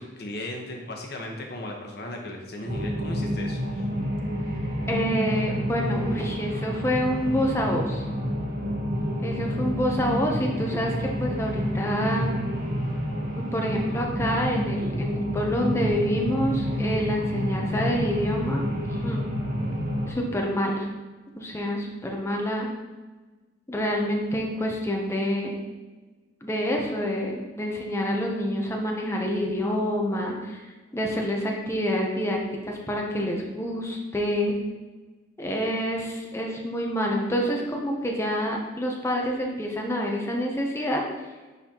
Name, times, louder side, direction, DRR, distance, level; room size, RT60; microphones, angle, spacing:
voice 1, 0.0-3.9, left 1 dB, 60° left, 1 dB, 1.1 m, -36 dB
sound 1, 2.6-20.1, equal, 50° right, 1.4 m, -29 dB
voice 2, 4.9-8.0 9.2-12.3 13.3-18.7 19.0-19.2 20.1-20.9 21.4-22.7 23.7-25.5 26.4-32.4 32.6-34.6 35.4-41.0, equal, 15° left, 0 dB, 0.7 m, -27 dB
10.0 x 4.1 x 2.9 m, 1.3 s
head